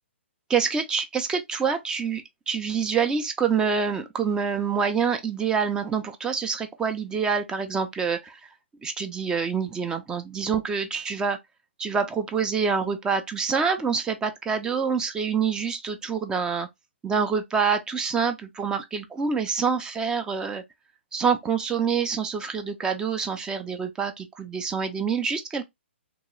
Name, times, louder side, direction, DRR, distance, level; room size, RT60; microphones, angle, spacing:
voice 1, 0.5-8.4 8.8-11.4 11.8-16.7 17.0-20.6 21.1-25.6, right 6 dB, 10° right, 0.4 m, -26 dB
2.8 x 2.2 x 3.0 m
hypercardioid pair, 135°, 7 cm